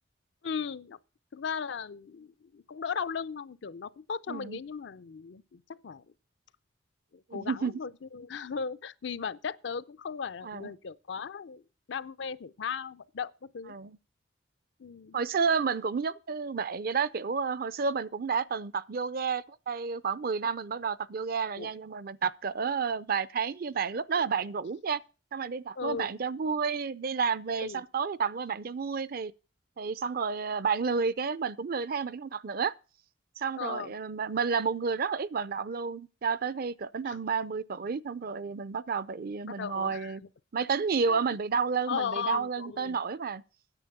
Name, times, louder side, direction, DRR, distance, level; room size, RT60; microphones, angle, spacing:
voice 1, 0.4-1.0 1.3-6.0 7.1-11.6 11.9-13.7 14.8-15.2 21.6-21.7 25.8-26.1 27.5-27.8 33.6-33.9 37.1-37.2 39.5-40.1 41.1-41.2 41.9-43.0, left 6 dB, 70° left, 0.5 m, -37 dB
voice 2, 4.3-4.6 7.3-7.7 10.4-10.7 13.7-14.0 15.1-25.0 25.3-29.3 29.8-32.7 33.4-40.2 40.5-43.4, right 5 dB, 55° right, 0.5 m, -31 dB
10.0 x 7.7 x 6.7 m
head